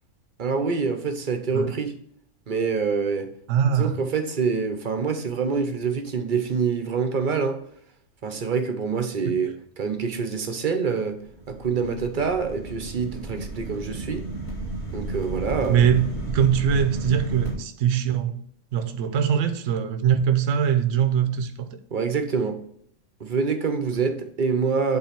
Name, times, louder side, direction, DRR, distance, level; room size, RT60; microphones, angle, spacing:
voice 1, 0.4-2.0 2.5-3.3 3.7-7.6 8.2-11.2 11.5-14.3 14.9-15.9 21.9-22.6 23.2-25.0, right 5 dB, 40° right, 0.9 m, -26 dB
voice 2, 3.5-3.9 15.7-18.4 18.7-21.7, right 8 dB, 60° right, 1.0 m, -22 dB
sound 1, 11.3-17.5, right 2 dB, 45° left, 2.9 m, -33 dB
8.4 x 4.0 x 5.8 m
omnidirectional pair, 1.5 m